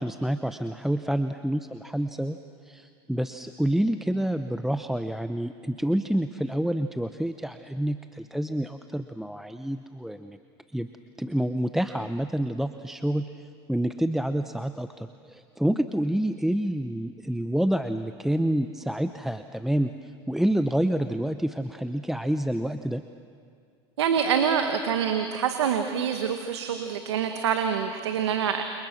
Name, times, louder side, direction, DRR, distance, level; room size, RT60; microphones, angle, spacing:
voice 1, 0.0-2.4 2.7-10.4 10.7-10.9 11.2-19.9 20.3-23.0, right 1 dB, ahead, 9 dB, 0.9 m, -28 dB
voice 2, 24.0-28.6, right 7 dB, 85° right, 6 dB, 1.6 m, -26 dB
29.5 x 27.5 x 6.2 m, 2.3 s
hypercardioid pair, 85°, 14 cm